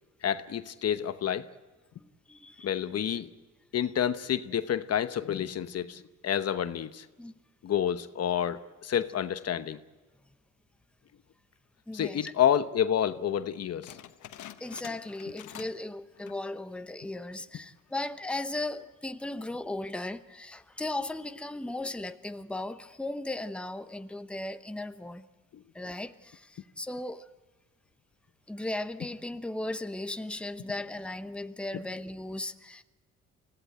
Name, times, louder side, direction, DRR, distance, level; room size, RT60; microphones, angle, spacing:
voice 1, 0.2-1.5 2.6-3.3 3.7-7.1 7.6-9.8 11.9-13.9 31.7-31.8, left 9 dB, 55° left, 1.0 m, -29 dB
voice 2, 2.0-2.8 7.2-7.3 11.9-12.3 14.6-25.3 25.7-27.3 28.5-32.8, left 2 dB, 5° left, 0.9 m, -37 dB
sound 1, 13.8-15.9 16.1-16.5 17.0-17.1 17.8-18.2, left 11 dB, 75° left, 1.2 m, -47 dB
24.5 x 16.5 x 9.1 m
cardioid pair, 90°, 30 cm